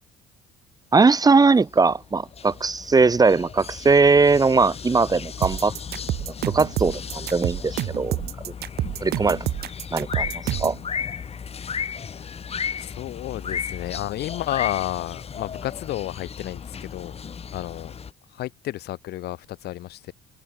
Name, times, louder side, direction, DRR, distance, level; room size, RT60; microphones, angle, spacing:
voice 1, 0.9-5.7 6.5-8.2 9.0-9.4 9.9-10.3 10.6-10.8, right 4 dB, 20° right, 1.8 m, -19 dB
sound 1, 1.5-18.1, left 6 dB, 35° left, 4.6 m, -35 dB
sound 2, 5.4-10.8, right 14 dB, 70° right, 2.4 m, -28 dB
voice 2, 12.8-17.2 17.5-18.0 18.3-20.1, left 15 dB, 75° left, 4.5 m, -31 dB
cardioid pair, 110°, 17 cm